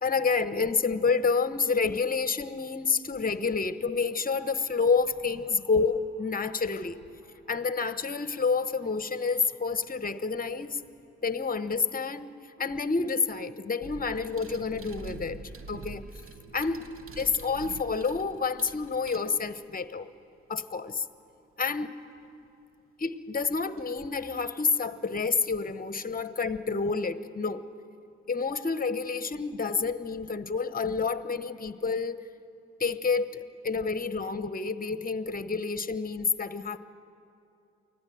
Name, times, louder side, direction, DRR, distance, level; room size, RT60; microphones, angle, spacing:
voice 1, 0.0-7.0 7.5-10.8 11.2-12.3 12.6-15.4 15.7-16.1 16.5-16.8 17.2-20.1 20.5-21.0 21.6-21.9 23.0-27.6 28.3-32.2 32.8-36.8, left 4 dB, 30° left, 13 dB, 1.1 m, -29 dB
Human voice, 4.0-7.9 8.3-11.1, equal, 70° right, 7.7 m, -62 dB
sound 1, 13.8-19.8 22.3-22.4 23.8-24.0 24.4-25.3, right 3 dB, 45° right, 1.4 m, -45 dB
24.0 x 16.0 x 8.0 m, 2.6 s
hypercardioid pair, 40°, 30 cm